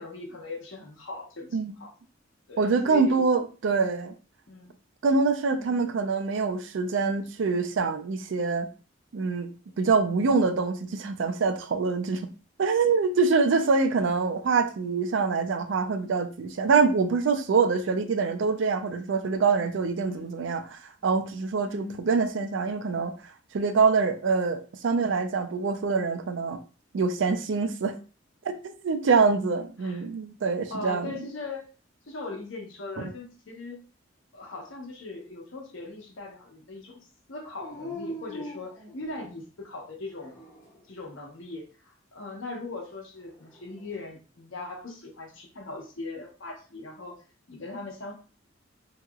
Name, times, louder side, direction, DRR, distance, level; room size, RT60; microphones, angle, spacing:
voice 1, 0.0-1.9 2.5-3.2 4.5-4.7 5.5-5.9 20.0-20.4 21.6-22.0 29.8-30.0 30.7-31.6 32.1-33.8 34.3-37.0 37.3-40.4 40.9-47.1 47.5-48.1, left 3 dB, 80° left, 0.9 m, -40 dB
voice 2, 2.6-4.1 5.0-8.7 9.1-9.5 9.8-12.3 12.6-23.1 23.5-26.6 26.9-28.0 28.4-28.5 28.8-31.2, right 4 dB, 70° right, 0.4 m, -25 dB
Dog, 37.6-39.5 40.1-40.9 43.2-44.0, left 1 dB, 15° left, 0.6 m, -42 dB
2.9 x 2.8 x 2.3 m
head